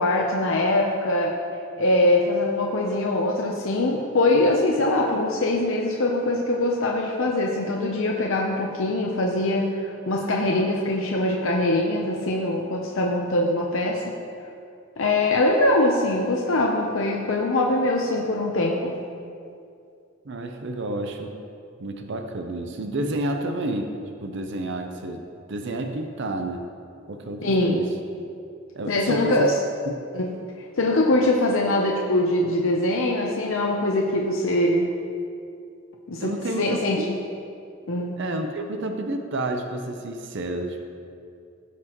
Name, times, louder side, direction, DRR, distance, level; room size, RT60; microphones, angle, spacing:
voice 1, 0.0-1.4 1.8-14.1 15.0-19.0 27.4-27.8 28.9-29.5 30.1-30.3 30.8-34.9 36.1-37.0 37.9-38.2, left 1 dB, 80° left, 0 dB, 0.8 m, -23 dB
voice 2, 20.2-21.3 21.8-23.9 24.2-25.2 25.5-26.7 27.1-27.9 28.7-29.5 29.9-30.0 36.2-37.1 38.2-40.9, right 2 dB, 65° right, 5 dB, 0.6 m, -30 dB
15.5 x 6.0 x 3.0 m, 2.4 s
head